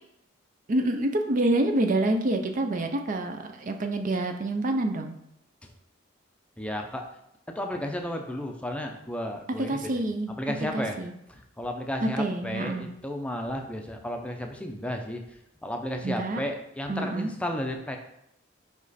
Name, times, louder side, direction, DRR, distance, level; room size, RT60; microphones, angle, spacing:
voice 1, 0.7-5.2 9.6-10.3 10.7-11.1 12.0-12.9 16.0-16.4 16.9-17.3, right 1 dB, 40° right, 6 dB, 0.5 m, -27 dB
voice 2, 6.6-7.0 7.5-9.8 10.3-11.0 11.3-15.2 15.6-18.0, left 1 dB, 5° left, 3 dB, 0.6 m, -33 dB
5.2 x 5.0 x 4.1 m, 0.77 s
head